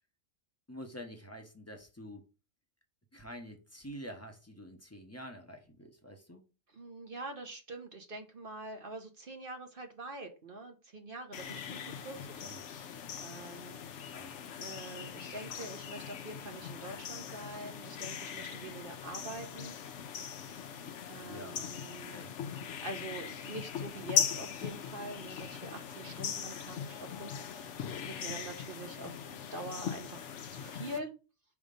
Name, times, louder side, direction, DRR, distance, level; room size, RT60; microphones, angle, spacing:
voice 1, 0.7-2.2 3.1-6.4 12.2-12.6 14.1-14.3 21.3-21.7 22.1-22.3, equal, 15° left, 0.8 m, -47 dB
voice 2, 6.7-12.4 13.2-13.8 14.6-19.8 21.1-22.2 22.8-27.8 28.1-29.2 29.5-31.1, right 2 dB, 50° right, 1.1 m, -45 dB
sound 1, 11.3-31.0, left 7 dB, 70° left, 1.0 m, -40 dB
5.2 x 3.6 x 5.2 m
omnidirectional pair, 1.3 m